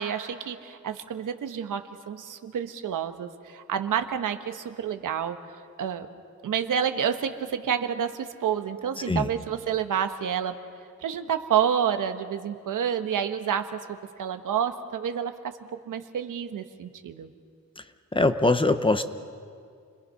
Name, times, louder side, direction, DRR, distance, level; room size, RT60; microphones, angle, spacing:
voice 1, 0.0-5.4 5.8-6.1 6.4-10.5 11.0-15.3 15.9-17.3, right 8 dB, 90° right, 8 dB, 1.2 m, -29 dB
voice 2, 18.1-19.0, left 2 dB, 15° left, 10 dB, 0.7 m, -22 dB
29.5 x 21.5 x 5.7 m, 2.3 s
wide cardioid pair, 160°, 31 cm